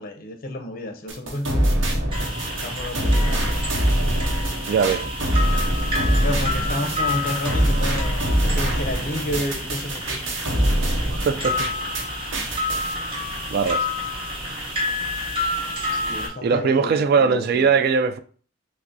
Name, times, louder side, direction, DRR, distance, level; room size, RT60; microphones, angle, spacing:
voice 1, 0.0-1.7 2.6-3.5 6.2-10.2 15.9-17.8, left 1 dB, 50° left, 0.6 m, -31 dB
sound 1, 1.1-12.1 12.3-12.9, right 1 dB, 80° right, 0.8 m, -24 dB
sound 2, 2.1-16.3, left 1 dB, 30° right, 1.2 m, -29 dB
sound 3, 2.8-3.4 4.0-4.4 4.9-5.5 6.2-6.4 6.9-7.5 8.2-10.3, equal, 5° right, 1.9 m, -43 dB
voice 2, 4.7-5.1 11.1-11.7 13.5-13.9 16.4-18.2, right 5 dB, 55° right, 0.3 m, -20 dB
5.9 x 2.1 x 2.6 m
head